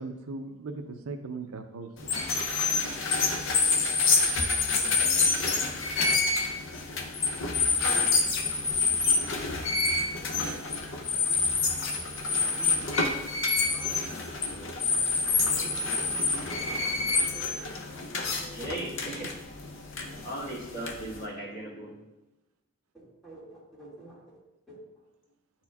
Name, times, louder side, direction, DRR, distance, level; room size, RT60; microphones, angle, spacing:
voice 1, 0.0-2.1, right 3 dB, 75° right, 7 dB, 0.5 m, -38 dB
sound 1, 2.0-21.3, left 4 dB, 60° left, 0.6 m, -27 dB
voice 2, 3.2-3.6 4.0-4.3 8.6-10.6 11.1-11.4 12.6-13.2 13.6-14.2 14.5-15.0 15.5-15.9 17.3-18.6 22.9-24.4 24.7-24.8, right 2 dB, ahead, -8 dB, 2.0 m, -50 dB
voice 3, 11.9-12.6 16.5-17.7 18.5-22.1, right 1 dB, 40° left, -6 dB, 1.8 m, -41 dB
9.3 x 4.4 x 2.3 m, 0.97 s
head